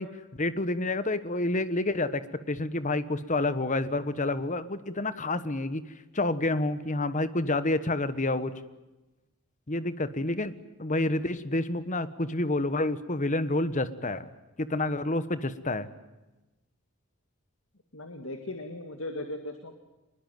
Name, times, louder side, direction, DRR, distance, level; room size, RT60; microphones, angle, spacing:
voice 1, 0.0-5.8 6.1-8.5 9.7-14.3 14.6-15.9, left 2 dB, 35° left, 13 dB, 1.3 m, -29 dB
voice 2, 17.9-19.7, left 1 dB, 65° left, 7 dB, 2.2 m, -38 dB
24.5 x 21.5 x 9.2 m, 1.1 s
head